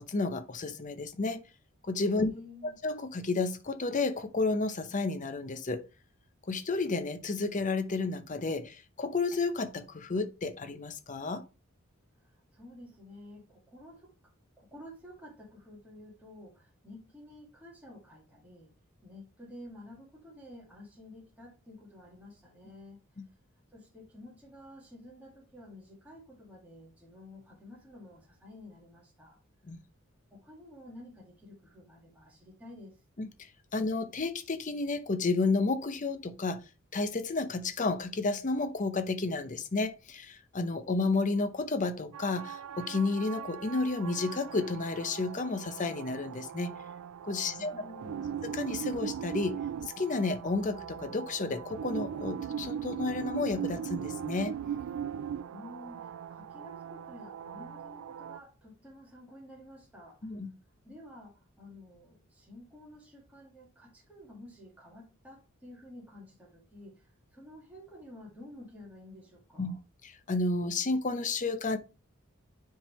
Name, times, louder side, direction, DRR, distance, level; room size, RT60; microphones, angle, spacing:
voice 1, 0.0-1.4 1.8-2.3 2.8-5.8 6.5-11.4 23.2-23.3 29.7-29.8 33.2-33.3 33.7-36.6 36.9-46.7 47.2-47.7 48.4-49.6 50.0-54.6 60.2-60.5 69.6-69.8 70.0-71.8, left 3 dB, 40° left, 0.7 m, -31 dB
voice 2, 2.2-2.8 12.2-18.7 19.0-23.0 23.7-29.4 30.3-33.0 47.4-48.4 55.2-60.4 60.7-69.8, left 1 dB, 5° right, 1.7 m, -51 dB
sound 1, 42.1-58.4, right 8 dB, 90° right, 0.3 m, -39 dB
9.9 x 3.7 x 3.1 m
head